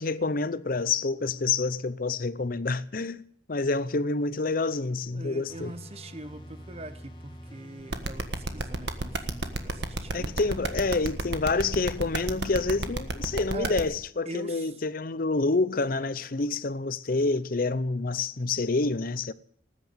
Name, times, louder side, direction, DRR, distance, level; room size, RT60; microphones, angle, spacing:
voice 1, 0.0-3.2 3.5-5.7 10.1-19.3, left 3 dB, 50° left, 0.7 m, -28 dB
voice 2, 5.1-10.4 13.5-13.8 14.2-14.7, right 2 dB, 35° right, 1.1 m, -42 dB
sound 1, 5.5-13.5, equal, 25° left, 2.0 m, -46 dB
sound 2, 7.9-13.8, right 2 dB, 70° right, 1.5 m, -30 dB
19.0 x 9.8 x 7.4 m
head